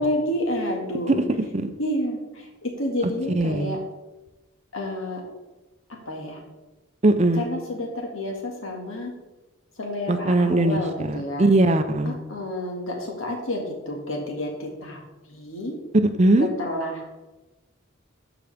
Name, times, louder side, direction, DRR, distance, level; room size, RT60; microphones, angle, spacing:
voice 1, 0.0-1.2 1.8-3.8 4.7-5.2 6.1-6.4 7.3-9.1 9.8-11.5 12.3-15.0 15.3-15.7 16.6-17.1, left 1 dB, 85° left, 1 dB, 1.9 m, -29 dB
voice 2, 1.1-1.7 3.3-3.8 7.0-7.5 10.1-12.1 16.2-16.5, right 2 dB, 30° right, 8 dB, 0.5 m, -20 dB
13.5 x 4.9 x 3.5 m, 1.1 s
head